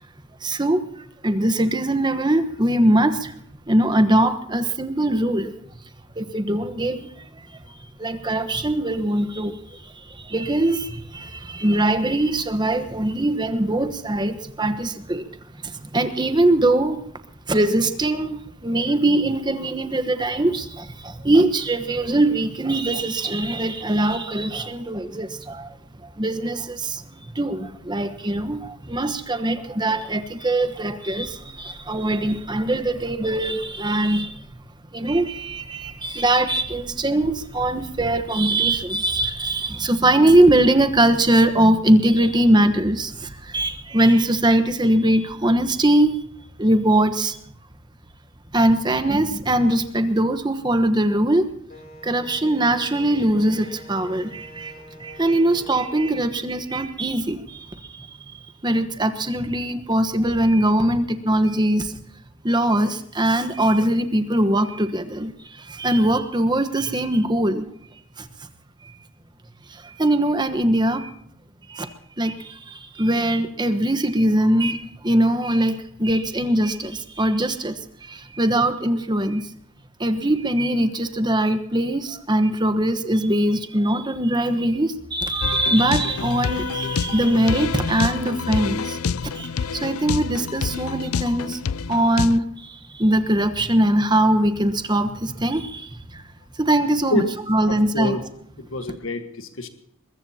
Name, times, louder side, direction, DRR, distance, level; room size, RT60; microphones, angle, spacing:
voice 1, 0.4-3.3 3.7-5.5 6.2-15.3 15.6-17.0 17.5-25.8 26.0-34.4 34.9-46.2 46.6-47.4 48.5-51.5 52.0-58.3 58.6-62.0 62.4-67.7 68.2-68.3 68.8-68.9 69.7-71.1 71.7-71.9 72.2-79.5 80.0-91.6 91.9-96.2 96.6-98.2, right 1 dB, 20° right, 9 dB, 1.2 m, -21 dB
Wind instrument woodwind instrument, 51.7-56.3, right 1 dB, 45° left, 3.7 m, -44 dB
sound 1, 85.4-92.4, left 6 dB, 85° left, 0.5 m, -27 dB
voice 2, 97.7-98.2 98.6-99.7, left 1 dB, 65° left, 7 dB, 1.5 m, -27 dB
22.0 x 21.5 x 2.9 m, 0.70 s
head